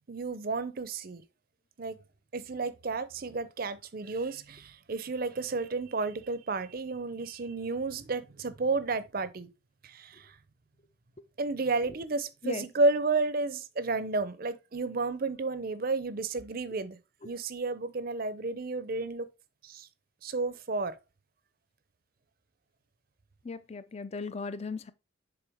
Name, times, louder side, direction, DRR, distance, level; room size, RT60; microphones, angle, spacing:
voice 1, 0.1-1.2 1.8-2.0 2.3-9.5 9.8-10.4 11.4-17.0 17.2-19.3 19.6-19.9 20.2-21.0, right 3 dB, 45° right, 0.6 m, -32 dB
voice 2, 23.4-24.9, left 4 dB, 30° left, 0.4 m, -37 dB
6.9 x 3.9 x 3.5 m
head